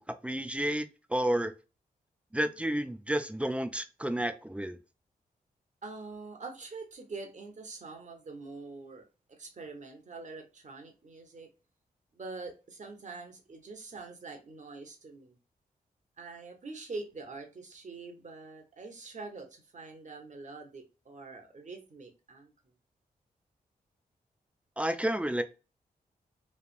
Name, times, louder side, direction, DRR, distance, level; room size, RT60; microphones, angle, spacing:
voice 1, 0.0-1.5 2.3-4.8 24.8-25.4, right 1 dB, 10° right, 0.5 m, -31 dB
voice 2, 5.8-11.5 12.1-15.4 16.2-22.7, right 3 dB, 50° right, 1.1 m, -45 dB
3.3 x 2.3 x 2.4 m
cardioid pair, 50°, 16 cm